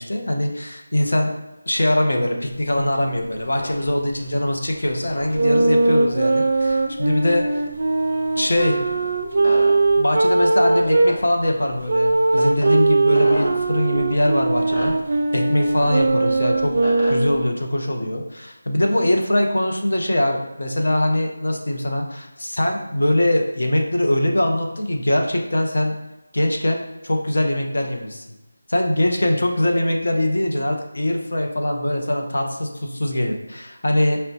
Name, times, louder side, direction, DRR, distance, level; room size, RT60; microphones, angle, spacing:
voice 1, 0.0-1.3 1.7-7.4 8.4-8.8 10.0-14.9 15.3-16.7 17.1-25.9 26.3-28.2 28.7-34.2, left 1 dB, 70° left, 2 dB, 0.6 m, -22 dB
sound 1, 2.4-17.4, equal, 40° left, 1.2 m, -37 dB
sound 2, 5.3-11.1 11.9-17.5, right 3 dB, 50° right, 0.3 m, -20 dB
5.4 x 2.1 x 2.7 m, 0.96 s
figure-of-eight pair, 170°, 0 cm